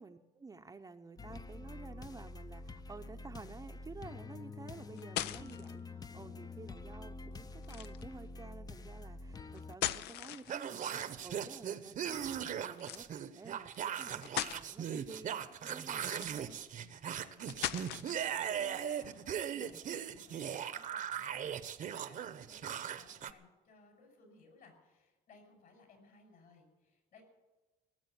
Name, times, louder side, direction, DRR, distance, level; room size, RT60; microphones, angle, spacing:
voice 1, 0.0-16.6, right 4 dB, 20° right, 7 dB, 0.7 m, -52 dB
sound 1, 1.2-9.8, left 3 dB, 20° left, 0.6 m, -47 dB
sound 2, 4.7-5.7 7.6-8.1 9.5-10.9 12.8-13.1 13.7-13.8 14.2-14.6 15.9-16.6 17.5-18.3, left 13 dB, 80° left, 0.6 m, -39 dB
sound 3, 10.5-23.3, right 9 dB, 50° right, 0.9 m, -39 dB
voice 2, 16.8-27.2, left 3 dB, 60° left, 4 dB, 5.6 m, -62 dB
18.0 x 7.5 x 9.7 m, 1.1 s
cardioid pair, 110°, 17 cm